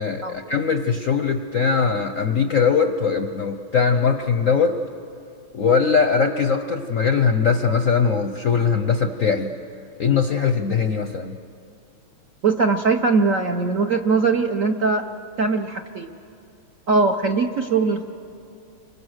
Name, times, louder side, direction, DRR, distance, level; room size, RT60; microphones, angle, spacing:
voice 1, 0.0-4.8 5.5-9.5 10.0-11.4, left 5 dB, 60° left, 7 dB, 0.9 m, -21 dB
voice 2, 12.4-15.0 15.4-16.1 16.9-18.0, right 4 dB, 55° right, 3 dB, 0.9 m, -20 dB
30.0 x 25.0 x 6.4 m, 2.5 s
omnidirectional pair, 2.3 m